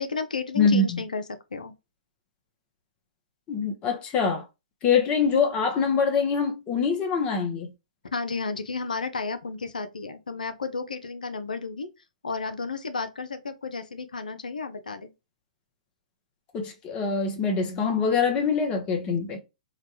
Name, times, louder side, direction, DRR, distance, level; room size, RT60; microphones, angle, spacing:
voice 1, 0.0-1.7 8.1-11.9 12.2-15.1, left 4 dB, 85° left, 0.4 m, -32 dB
voice 2, 0.6-1.0 3.5-4.4 4.8-7.7 16.5-19.4, left 5 dB, 25° left, 0.7 m, -24 dB
2.9 x 2.2 x 2.8 m
hypercardioid pair, 125°, 4 cm